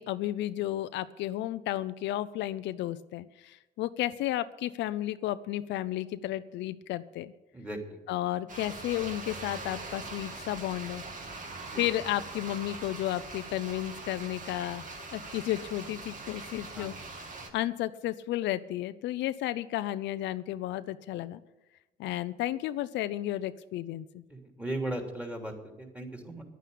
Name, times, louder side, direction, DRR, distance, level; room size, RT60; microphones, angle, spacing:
voice 1, 0.0-7.3 8.1-11.0 11.8-16.9 17.2-21.4 22.0-24.2, left 14 dB, 80° left, 13 dB, 0.6 m, -33 dB
voice 2, 7.5-8.0 11.7-11.8 16.7-16.9 24.3-25.5 25.8-26.4, right 1 dB, 5° right, 2 dB, 3.1 m, -37 dB
sound 1, 8.5-17.5, right 3 dB, 45° right, 2.3 m, -42 dB
10.5 x 9.3 x 8.5 m, 1.0 s
cardioid pair, 90°, 19 cm